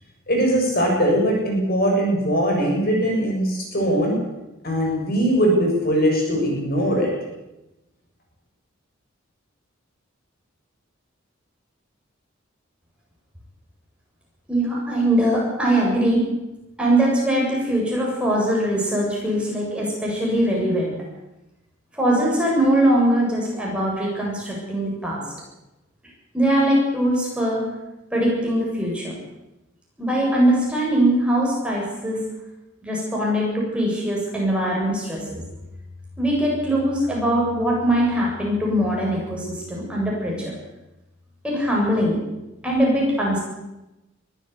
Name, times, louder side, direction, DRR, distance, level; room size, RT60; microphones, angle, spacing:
voice 1, 0.3-4.2 4.6-7.1, equal, 50° left, 0 dB, 7.0 m, -20 dB
voice 2, 14.5-16.2 16.8-20.9 21.9-25.2 26.3-27.6 28.1-29.1 30.0-32.2 32.8-35.4 36.2-40.5 41.4-42.2 42.6-43.4, right 1 dB, 5° right, -4 dB, 7.6 m, -21 dB
23.0 x 14.0 x 8.4 m, 0.97 s
head